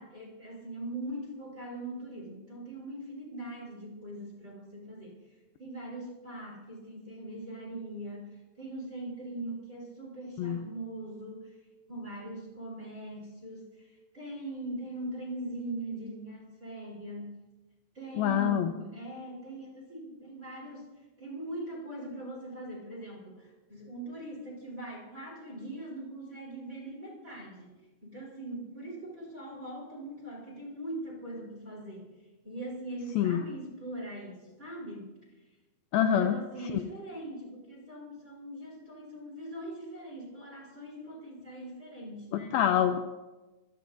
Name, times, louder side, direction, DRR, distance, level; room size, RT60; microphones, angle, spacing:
voice 1, 0.0-5.2 5.6-11.5 11.9-17.4 17.9-20.9 21.2-32.1 32.4-35.2 35.9-42.6, right 1 dB, 15° right, -3 dB, 4.0 m, -41 dB
voice 2, 18.2-18.7 33.2-33.4 35.9-36.3 36.7-36.8 42.3-43.1, left 10 dB, 85° left, 8 dB, 2.1 m, -26 dB
25.0 x 18.5 x 2.7 m, 1.2 s
omnidirectional pair, 5.0 m